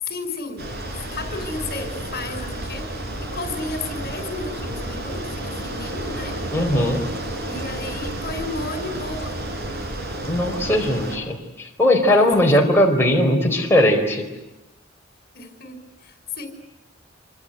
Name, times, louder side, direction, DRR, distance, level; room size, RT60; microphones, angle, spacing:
voice 1, 0.0-0.8 1.1-6.4 7.5-9.4 12.2-12.5 15.3-16.5, left 3 dB, 55° left, 7 dB, 5.4 m, -33 dB
Bicycle, 0.6-11.2, right 1 dB, 55° right, 5.7 m, -31 dB
voice 2, 6.5-7.0 10.2-14.3, left 1 dB, 10° left, -1 dB, 4.6 m, -19 dB
27.5 x 25.5 x 8.1 m, 0.96 s
head